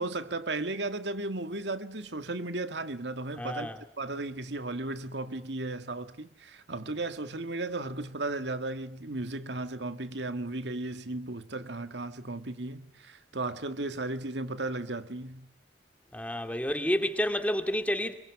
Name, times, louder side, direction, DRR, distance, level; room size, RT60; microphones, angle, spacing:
voice 1, 0.0-3.7 4.0-15.5, right 2 dB, 75° right, 2.0 m, -35 dB
voice 2, 3.4-3.8 16.1-18.1, equal, 10° left, 2.4 m, -29 dB
28.5 x 23.5 x 8.6 m
head